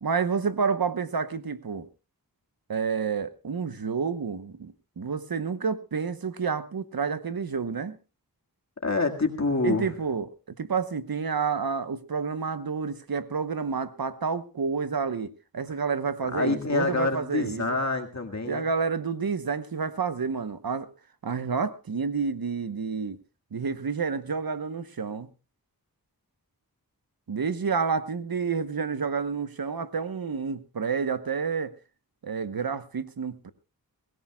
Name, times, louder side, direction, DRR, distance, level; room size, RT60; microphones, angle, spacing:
voice 1, 0.0-1.9 2.7-8.0 9.6-17.7 18.5-20.9 21.2-23.2 23.5-25.3 27.3-31.7 32.2-33.5, right 5 dB, 75° right, 1.1 m, -29 dB
voice 2, 8.8-9.9 16.3-18.7, left 3 dB, 50° left, 1.9 m, -27 dB
24.0 x 16.0 x 2.3 m
wide cardioid pair, 60°, 36 cm